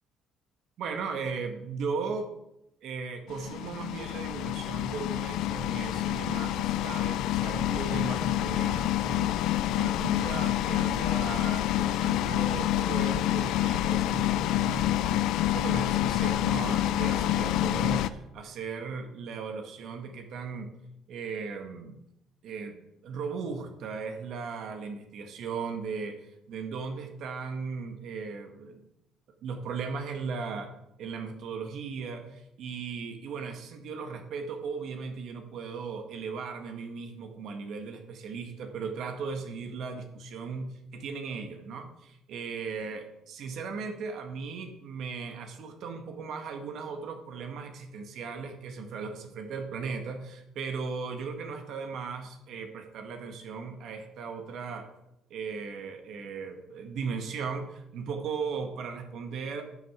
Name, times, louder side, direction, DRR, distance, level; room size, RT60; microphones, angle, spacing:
voice 1, 0.8-2.3 2.8-9.4 9.7-15.3 15.5-20.7 21.1-22.0 22.4-28.8 29.4-30.7 31.0-54.9 55.3-59.6, right 5 dB, 65° right, 5 dB, 1.8 m, -37 dB
sound 1, 3.3-18.1, left 13 dB, 80° left, 0.6 m, -27 dB
11.5 x 6.6 x 8.1 m, 0.84 s
cardioid pair, 120°, 0 cm